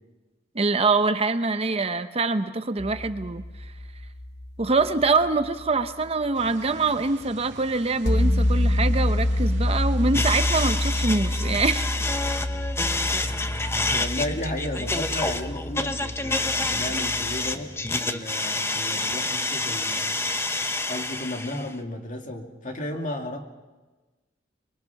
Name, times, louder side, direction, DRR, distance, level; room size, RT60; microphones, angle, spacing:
voice 1, 0.5-3.4 4.6-11.9, right 3 dB, 35° right, 10 dB, 0.8 m, -24 dB
sound 1, 2.8-6.0 8.0-17.5, left 1 dB, 65° left, 1.2 m, -27 dB
sound 2, 6.3-12.4, right 3 dB, 80° right, 2.1 m, -47 dB
sound 3, 10.1-21.7, left 2 dB, 15° left, 1.0 m, -28 dB
voice 2, 13.9-20.2 20.9-23.4, left 1 dB, 45° left, 3 dB, 2.4 m, -34 dB
25.0 x 22.5 x 5.9 m, 1.2 s
head